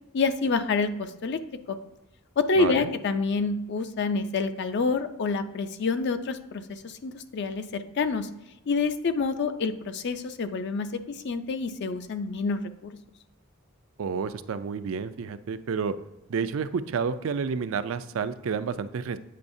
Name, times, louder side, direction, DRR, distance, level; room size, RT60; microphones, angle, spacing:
voice 1, 0.1-1.4 1.7-1.8 2.4-8.3 8.7-13.0, left 4 dB, 55° left, 9 dB, 0.4 m, -27 dB
voice 2, 2.6-2.9 14.0-15.9 16.3-19.2, right 5 dB, 70° right, 12 dB, 0.4 m, -30 dB
8.4 x 5.5 x 2.6 m, 0.97 s
head